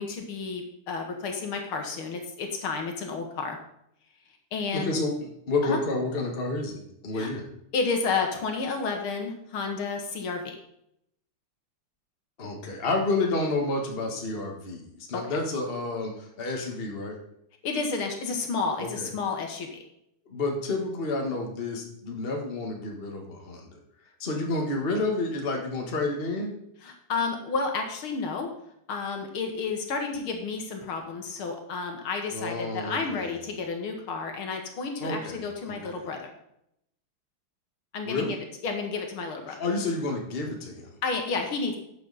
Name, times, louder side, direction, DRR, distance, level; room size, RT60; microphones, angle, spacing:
voice 1, 0.0-3.6 4.5-5.0 5.6-5.8 7.1-7.3 7.7-10.5 15.1-15.4 17.6-19.8 26.8-28.5 28.9-36.3 37.9-38.4 38.6-39.6 41.0-41.8, left 4 dB, 75° left, 4 dB, 2.2 m, -31 dB
voice 2, 4.7-7.4 12.4-17.1 18.8-19.1 20.3-23.8 24.2-26.5 32.3-33.3 35.0-36.1 38.0-38.4 39.5-40.9, left 2 dB, 30° left, 1 dB, 1.6 m, -30 dB
11.5 x 7.6 x 4.1 m, 0.75 s
omnidirectional pair, 2.4 m